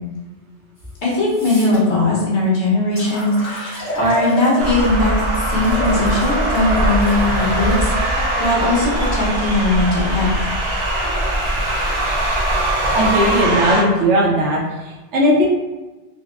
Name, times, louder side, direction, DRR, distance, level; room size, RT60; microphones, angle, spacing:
sound 1, 0.8-0.9 1.3-1.8 2.5-2.6 3.0-5.0 5.6-9.2 10.0-13.4, equal, 35° left, 1.4 m, -31 dB
voice 1, 1.0-10.3, left 2 dB, 70° left, -6 dB, 1.2 m, -19 dB
sound 2, 4.6-13.8, right 1 dB, 40° right, 0.4 m, -21 dB
voice 2, 12.9-15.5, equal, 85° right, -3 dB, 1.0 m, -17 dB
3.8 x 2.2 x 2.4 m, 1.1 s
omnidirectional pair, 1.2 m